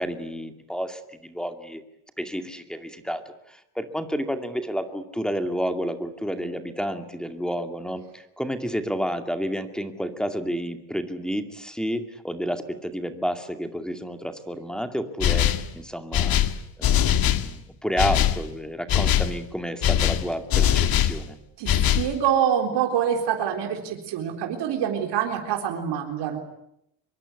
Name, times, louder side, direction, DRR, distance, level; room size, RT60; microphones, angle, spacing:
voice 1, 0.0-1.8 2.2-3.2 3.5-16.4 16.8-21.4, equal, ahead, 7 dB, 2.3 m, -30 dB
sound 1, 15.2-15.7 16.1-17.5 18.0-18.4 18.9-19.3 19.8-21.2 21.7-22.1, left 10 dB, 55° left, 1.8 m, -21 dB
voice 2, 21.6-26.4, right 9 dB, 85° right, 3 dB, 3.9 m, -25 dB
25.0 x 23.0 x 9.7 m, 0.77 s
cardioid pair, 145°, 41 cm